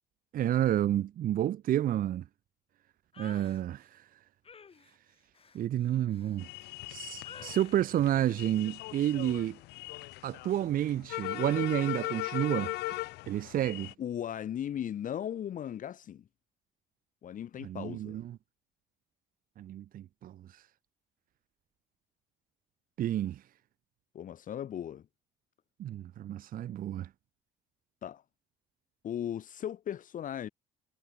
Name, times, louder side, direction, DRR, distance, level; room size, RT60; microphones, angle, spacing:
voice 1, 0.3-2.2 3.2-4.0 5.5-6.5 6.9-9.6 10.2-12.7 13.3-13.9 17.6-18.4 19.6-20.6 23.0-23.4 25.8-27.1, right 12 dB, 55° right, 1.0 m, -30 dB
sound 1, 3.1-3.6 4.4-6.9 7.2-7.8 8.2-8.5 8.9-9.2, left 6 dB, 35° left, 7.5 m, -53 dB
sound 2, 6.4-13.9, left 20 dB, 90° left, 1.7 m, -39 dB
voice 2, 14.0-16.2 17.2-18.2 24.1-25.0 28.0-28.2 29.0-30.5, left 10 dB, 50° left, 2.2 m, -37 dB
cardioid pair, 110°, 17 cm